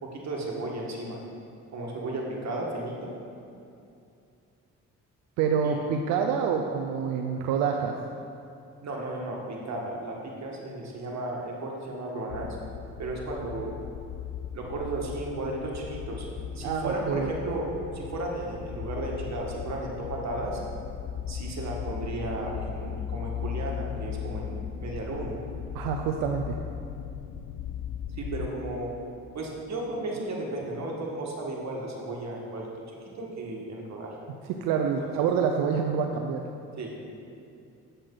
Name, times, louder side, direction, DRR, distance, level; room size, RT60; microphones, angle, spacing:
voice 1, 0.0-1.2 1.7-3.1 5.6-5.8 8.8-12.6 13.0-13.7 14.5-16.2 16.5-20.6 21.3-25.4 28.2-28.9 29.3-32.7 33.2-34.2 35.0-35.1 36.8-37.1, right 2 dB, 55° right, -2 dB, 1.7 m, -34 dB
voice 2, 5.4-7.9 16.6-17.3 25.7-26.6 34.5-36.4, right 6 dB, 90° right, 3 dB, 0.5 m, -27 dB
sound 1, 12.3-28.5, left 9 dB, 55° left, 0.5 m, -37 dB
7.7 x 6.6 x 3.9 m, 2.6 s
supercardioid pair, 65°, 33 cm